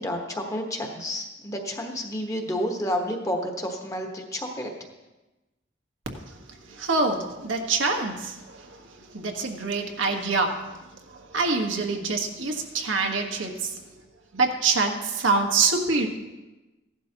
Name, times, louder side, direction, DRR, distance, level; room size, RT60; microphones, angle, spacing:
voice 1, 0.0-4.7, equal, 15° left, 2 dB, 1.2 m, -30 dB
voice 2, 6.7-10.6 11.1-13.8 14.3-16.1, right 3 dB, 90° right, 3 dB, 1.5 m, -25 dB
16.0 x 11.5 x 2.9 m, 1.1 s
head